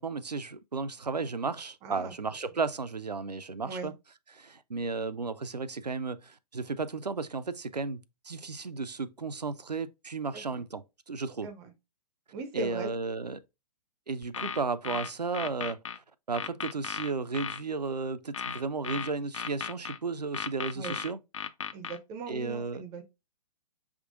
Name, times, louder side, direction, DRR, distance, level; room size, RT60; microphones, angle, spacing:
voice 1, 0.0-3.9 4.3-11.5 12.5-13.4 14.1-21.2 22.3-22.8, right 4 dB, 85° right, 0.4 m, -34 dB
voice 2, 1.8-2.1 3.6-3.9 10.3-10.6 11.4-11.7 12.3-12.9 20.7-21.0 21.7-23.0, right 4 dB, 15° right, 0.4 m, -39 dB
sound 1, 14.2-16.0 16.3-17.6 18.3-20.0 20.3-22.0, left 7 dB, 55° left, 0.4 m, -36 dB
5.8 x 3.6 x 2.4 m
figure-of-eight pair, 120°, 20 cm